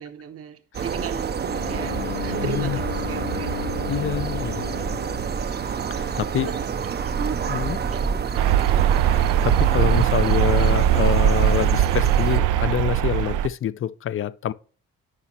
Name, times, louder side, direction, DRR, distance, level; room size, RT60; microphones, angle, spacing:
voice 1, 0.0-3.6 4.8-4.9 6.4-7.4 7.9-8.7, right 7 dB, 50° right, 0.9 m, -36 dB
sound 1, 0.7-12.4, right 6 dB, 35° right, 0.6 m, -28 dB
Bowed string instrument, 1.4-6.3, left 12 dB, 65° left, 0.8 m, -35 dB
voice 2, 2.4-2.8 3.9-4.6 5.9-6.5 7.5-7.8 9.1-14.5, left 10 dB, 45° left, 0.5 m, -26 dB
sound 2, 8.3-13.5, right 11 dB, 80° right, 0.5 m, -20 dB
9.8 x 5.1 x 2.8 m
cardioid pair, 90°, 30 cm